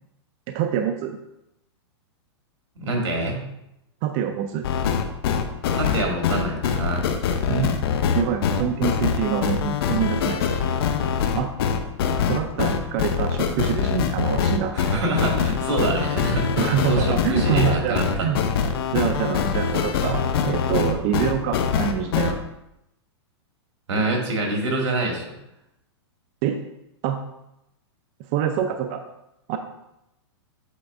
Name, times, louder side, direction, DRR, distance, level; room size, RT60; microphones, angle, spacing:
voice 1, 0.5-1.2 4.0-4.7 7.5-7.7 8.1-10.4 11.3-11.5 12.3-14.7 16.6-18.4 18.9-22.4 26.4-26.6 27.0-27.2 28.3-29.0 29.5-29.6, right 9 dB, 35° right, 6 dB, 0.4 m, -25 dB
voice 2, 2.8-3.5 5.7-7.1 14.7-18.3 23.9-25.3, right 2 dB, 85° right, 1 dB, 2.0 m, -26 dB
sound 1, 4.6-22.3, left 7 dB, 55° left, 0.7 m, -23 dB
8.0 x 3.3 x 4.8 m, 0.85 s
hypercardioid pair, 155°, 15 cm